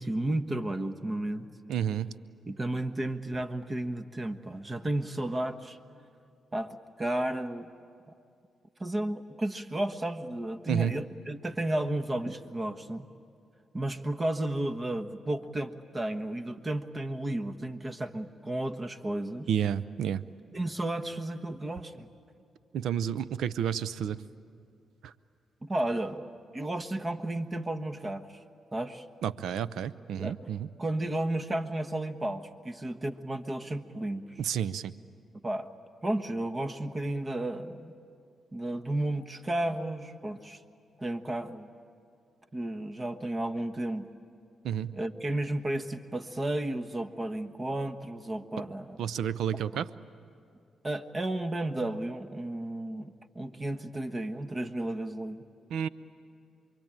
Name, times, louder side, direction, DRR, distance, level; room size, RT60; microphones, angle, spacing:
voice 1, 0.0-1.5 2.5-5.8 6.5-7.7 8.8-13.1 13.7-19.5 20.5-22.1 25.6-26.3 26.5-28.4 28.7-29.0 30.1-30.4 30.8-34.4 35.4-35.7 36.0-37.9 38.5-40.6 41.0-41.7 42.5-44.1 44.9-49.0 50.8-55.4, right 1 dB, 30° right, 8 dB, 1.3 m, -33 dB
voice 2, 1.7-2.1 10.7-10.9 19.5-20.2 22.7-24.2 25.0-25.1 29.2-30.7 34.4-34.9 44.6-44.9 49.0-49.9 55.7-55.9, right 9 dB, 80° right, 17 dB, 0.6 m, -30 dB
28.0 x 23.0 x 8.9 m, 2.4 s
supercardioid pair, 55°, 0 cm